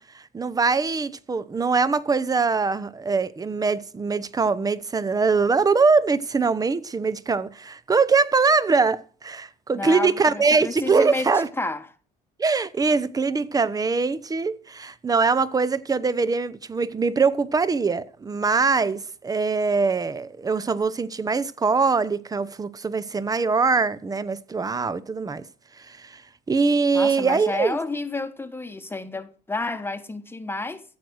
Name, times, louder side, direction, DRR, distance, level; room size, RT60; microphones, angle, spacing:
voice 1, 0.0-11.5 12.4-25.4 25.9-26.2 26.5-27.8, right 4 dB, 20° right, 0.8 m, -22 dB
voice 2, 9.7-11.8 26.9-30.8, left 2 dB, 15° left, 1.2 m, -30 dB
14.5 x 7.9 x 6.3 m
cardioid pair, 110°, 17 cm